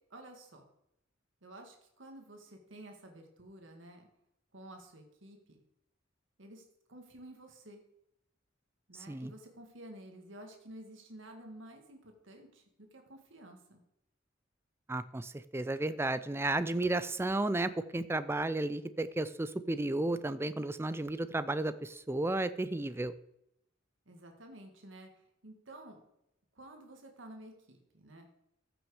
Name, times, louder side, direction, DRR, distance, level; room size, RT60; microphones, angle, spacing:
voice 1, 0.1-0.6 1.4-4.1 4.5-5.6 6.4-6.6 6.9-7.8 8.9-12.6 12.9-13.8 24.1-25.1 25.4-26.0 26.6-28.3, right 1 dB, 75° right, 3 dB, 1.9 m, -51 dB
voice 2, 14.9-23.1, right 2 dB, 15° right, 14 dB, 0.4 m, -33 dB
14.5 x 6.1 x 4.8 m, 0.81 s
head